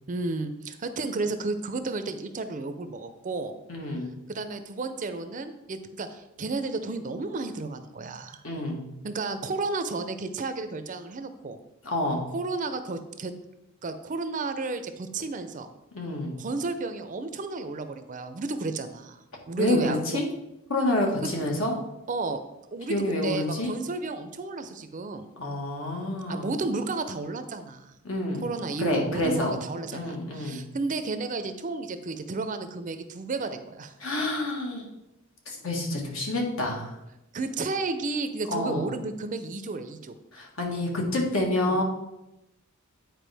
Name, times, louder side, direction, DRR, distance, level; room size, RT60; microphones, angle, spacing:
voice 1, 0.1-3.6 4.3-8.4 9.0-11.6 12.3-13.3 13.8-15.7 16.4-19.2 19.5-20.2 21.2-21.3 22.1-22.4 22.7-25.3 26.3-27.9 28.3-33.9 37.3-40.2 41.6-41.8, right 3 dB, 40° right, 9 dB, 0.5 m, -32 dB
voice 2, 3.7-4.1 8.4-8.9 11.8-12.3 15.9-16.4 19.6-20.3 20.7-21.7 22.9-23.7 25.4-26.5 28.0-28.5 28.8-29.6 29.9-30.6 34.0-34.8 35.5-36.9 38.5-38.8 40.3-41.8, left 1 dB, 70° left, 0 dB, 1.5 m, -28 dB
9.1 x 4.6 x 3.4 m, 0.92 s
head